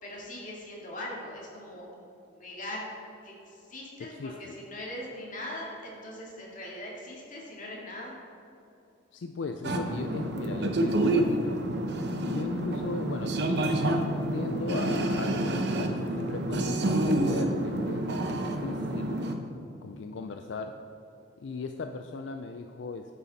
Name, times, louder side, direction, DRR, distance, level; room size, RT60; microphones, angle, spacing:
voice 1, 0.0-1.8 2.3-2.9 3.2-8.2, left 1 dB, 45° left, -3 dB, 2.1 m, -41 dB
voice 2, 4.0-4.6 9.1-11.6 12.2-13.4 14.3-19.2 19.8-20.8 21.4-23.1, left 4 dB, 75° left, 7 dB, 0.4 m, -37 dB
sound 1, 9.6-19.3, right 1 dB, 60° right, 0.8 m, -28 dB
9.9 x 7.4 x 4.0 m, 2.8 s
head